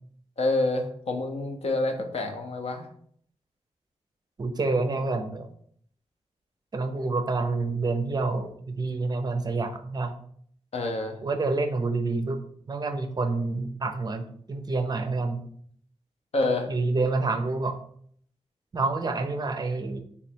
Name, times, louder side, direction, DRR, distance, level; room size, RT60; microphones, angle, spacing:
voice 1, 0.4-2.9 10.7-11.2 16.3-16.7, left 2 dB, 60° left, 4 dB, 0.8 m, -27 dB
voice 2, 4.4-5.5 6.7-10.1 11.2-12.4 12.7-15.5 16.7-17.8 18.7-20.0, right 3 dB, 35° right, 7 dB, 0.6 m, -28 dB
3.4 x 3.1 x 4.5 m, 0.63 s
wide cardioid pair, 125°, 12 cm